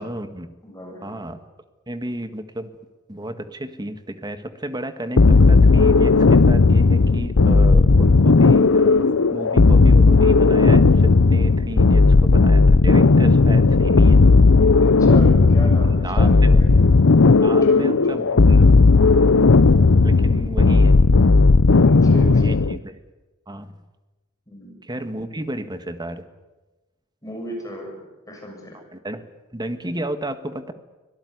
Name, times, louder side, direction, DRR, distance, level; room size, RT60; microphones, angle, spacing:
voice 1, 0.0-0.5 1.0-1.4 1.9-2.7 3.1-14.2 15.6-15.7 16.0-16.3 17.4-18.7 19.3-19.5 20.0-21.0 22.1-23.0 23.5-23.7 24.8-26.2 28.7-29.2 29.5-30.7, right 1 dB, 20° right, 9 dB, 1.8 m, -32 dB
voice 2, 0.6-1.2 14.8-16.7 17.3-18.5 21.7-22.6 24.5-24.8 27.2-28.0 28.3-28.8, equal, 15° left, 1 dB, 6.8 m, -36 dB
sound 1, 5.2-22.8, left 3 dB, 65° left, 0.7 m, -14 dB
24.5 x 18.0 x 9.7 m, 1.1 s
head